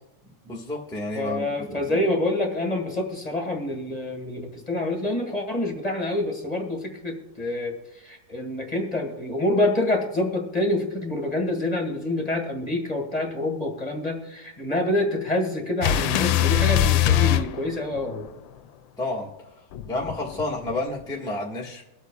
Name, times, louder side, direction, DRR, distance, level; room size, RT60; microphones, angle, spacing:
voice 1, 0.4-2.0 19.0-19.3 19.9-21.9, left 2 dB, ahead, -3 dB, 1.3 m, -30 dB
voice 2, 1.1-18.2, left 1 dB, 20° left, 1 dB, 1.8 m, -27 dB
sound 1, 15.8-18.3 19.7-21.0, left 11 dB, 90° left, 1.3 m, -22 dB
24.0 x 8.2 x 2.4 m, 0.99 s
omnidirectional pair, 2.0 m